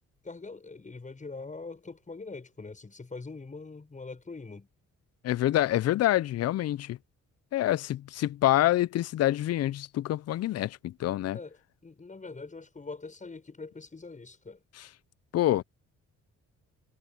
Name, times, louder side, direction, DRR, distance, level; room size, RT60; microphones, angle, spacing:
voice 1, 0.2-4.7 11.3-11.6 11.8-14.6, left 3 dB, 25° left, 6.8 m, -43 dB
voice 2, 5.2-7.0 7.5-11.4 14.8-14.9 15.3-15.6, left 14 dB, 55° left, 0.5 m, -26 dB
cardioid pair, 90°, 30 cm